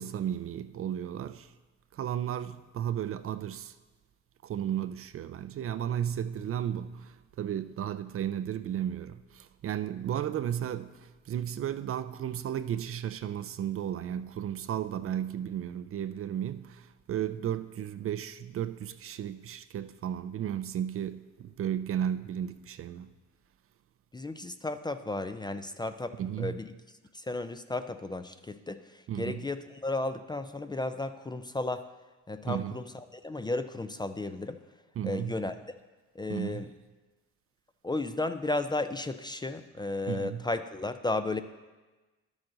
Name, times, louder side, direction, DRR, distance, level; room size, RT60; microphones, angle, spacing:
voice 1, 0.0-1.5 1.9-3.7 4.4-23.1 26.2-26.6 29.1-29.4 32.5-32.8 35.0-35.4 36.3-36.7 40.1-40.4, right 10 dB, 50° right, 0.4 m, -34 dB
voice 2, 24.1-26.7 27.1-28.8 29.2-31.8 32.3-34.6 35.0-35.8 36.2-36.7 37.8-41.4, left 2 dB, 15° left, 0.4 m, -34 dB
11.5 x 7.0 x 3.9 m
cardioid pair, 90°, 30 cm